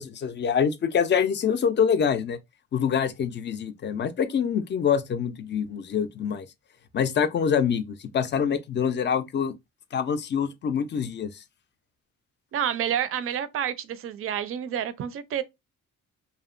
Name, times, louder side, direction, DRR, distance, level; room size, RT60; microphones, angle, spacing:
voice 1, 0.0-2.4 2.7-6.5 6.9-9.5 9.9-11.4, left 7 dB, 40° left, 0.4 m, -25 dB
voice 2, 12.5-15.4, right 9 dB, 45° right, 0.4 m, -29 dB
2.7 x 2.1 x 2.5 m
cardioid pair, 90°, 30 cm